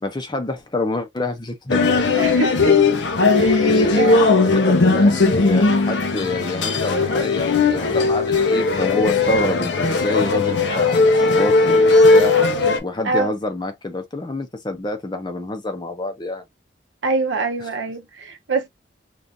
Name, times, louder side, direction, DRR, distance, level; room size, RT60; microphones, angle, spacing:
voice 1, 0.0-1.8 3.6-16.4, left 2 dB, 20° left, 0.6 m, -27 dB
sound 1, 1.7-12.8, left 3 dB, 65° left, 0.7 m, -17 dB
voice 2, 2.2-2.8 3.3-4.4 13.0-13.3 17.0-18.7, right 4 dB, 75° right, 0.6 m, -25 dB
3.7 x 2.4 x 2.6 m
head